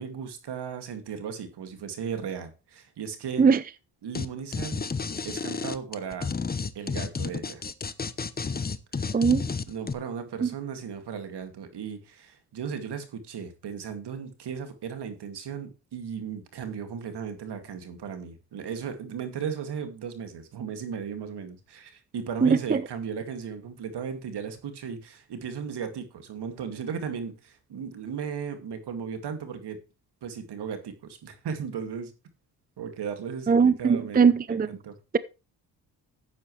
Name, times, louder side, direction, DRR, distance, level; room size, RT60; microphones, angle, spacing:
voice 1, 0.0-3.4 4.0-4.9 5.2-6.3 6.7-7.7 8.9-9.2 9.7-29.8 30.2-32.1 32.8-35.0, right 7 dB, 65° right, 2.4 m, -36 dB
sound 1, 4.1-4.3 4.5-9.9, left 5 dB, 20° left, 0.9 m, -31 dB
voice 2, 9.1-9.4 10.4-10.5 22.4-22.8 33.5-34.7, right 5 dB, 20° right, 0.6 m, -20 dB
12.0 x 8.7 x 3.3 m
cardioid pair, 65°, 42 cm